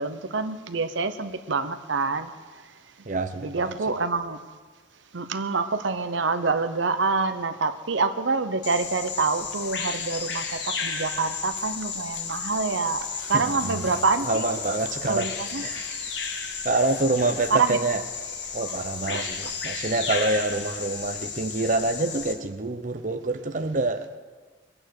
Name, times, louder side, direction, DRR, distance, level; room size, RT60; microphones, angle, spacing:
voice 1, 0.0-2.3 3.4-4.4 5.1-14.4 15.1-15.6 17.5-17.8 19.1-19.5, right 4 dB, 75° right, 10 dB, 0.8 m, -26 dB
voice 2, 3.1-3.7 13.3-13.9 14.3-15.3 15.6-15.8 16.6-18.0 18.5-24.2, right 2 dB, 40° right, 7 dB, 0.7 m, -26 dB
Bird vocalization bird call bird song, 8.6-22.3, left 5 dB, 60° left, 1.7 m, -33 dB
22.5 x 8.9 x 6.5 m, 1.5 s
head